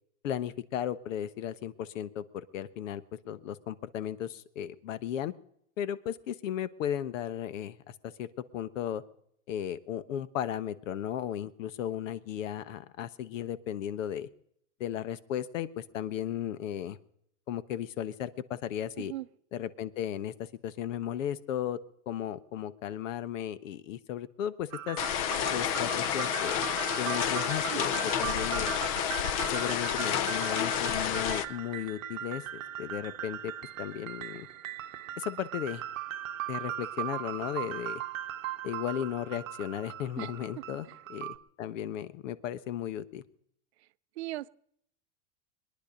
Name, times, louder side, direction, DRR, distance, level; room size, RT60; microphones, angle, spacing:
voice 1, 0.2-5.3 5.8-8.3 8.5-9.0 9.5-14.3 14.8-17.0 17.5-19.1 19.5-21.8 22.1-25.0 25.5-26.6 27.0-28.8 29.5-33.5 33.8-34.5 35.2-35.8 36.5-38.0 38.6-43.2, left 10 dB, 75° left, 15 dB, 1.2 m, -35 dB
sound 1, 24.7-41.4, right 12 dB, 90° right, 1.0 m, -39 dB
sound 2, 25.0-31.4, left 9 dB, 30° left, 0.5 m, -30 dB
voice 2, 44.2-44.5, right 17 dB, 55° right, 17 dB, 0.6 m, -37 dB
22.5 x 10.5 x 5.2 m, 0.70 s
supercardioid pair, 175°, 39 cm